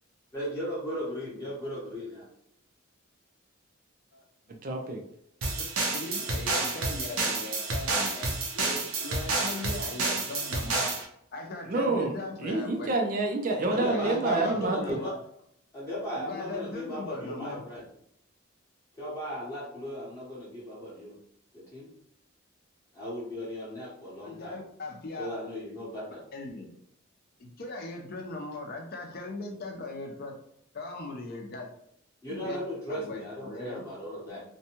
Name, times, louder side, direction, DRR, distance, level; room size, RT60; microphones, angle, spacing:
voice 1, 0.3-2.3 13.7-15.1 15.7-17.9 19.0-21.2 21.5-21.9 22.9-24.6 25.2-26.2 32.2-34.4, equal, 15° left, -9 dB, 0.8 m, -36 dB
voice 2, 4.6-5.0 11.7-15.0, right 2 dB, 40° right, 2 dB, 0.4 m, -28 dB
sound 1, 5.4-11.0, right 3 dB, 75° right, 0.7 m, -30 dB
voice 3, 5.9-10.9 11.3-12.9 13.8-15.2 16.1-17.6 24.2-25.3 26.3-26.7 27.4-30.4 30.7-31.7 32.3-32.6 32.9-33.8 34.3-34.4, left 2 dB, 45° left, 2 dB, 0.6 m, -39 dB
2.6 x 2.2 x 2.9 m, 0.72 s
head